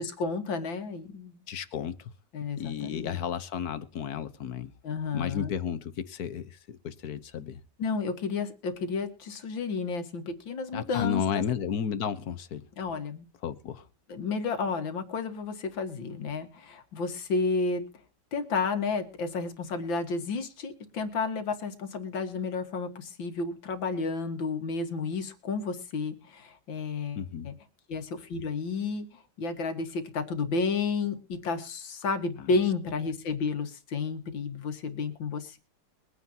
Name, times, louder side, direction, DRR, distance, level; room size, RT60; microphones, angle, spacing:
voice 1, 0.0-1.4 2.3-3.2 4.8-5.5 7.8-11.4 12.8-13.3 14.1-17.8 18.3-27.5 27.9-35.6, left 4 dB, 90° left, 2.4 m, -31 dB
voice 2, 1.5-2.1 2.6-4.7 5.1-7.6 10.7-12.6 13.4-13.8 27.2-27.5, left 8 dB, 60° left, 1.4 m, -33 dB
22.5 x 9.3 x 2.8 m
omnidirectional pair, 2.0 m